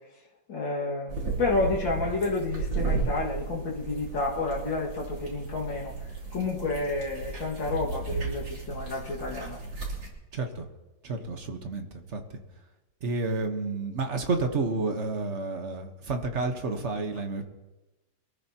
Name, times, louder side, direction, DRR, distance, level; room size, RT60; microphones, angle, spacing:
voice 1, 0.5-5.9 6.3-9.6, left 3 dB, 85° left, -4 dB, 2.8 m, -30 dB
sound 1, 1.1-10.1, right 4 dB, 85° right, 3.7 m, -34 dB
voice 2, 10.3-10.6 11.0-12.2 13.0-17.4, right 3 dB, 40° right, 5 dB, 1.4 m, -30 dB
23.0 x 13.5 x 2.9 m, 1.1 s
omnidirectional pair, 2.0 m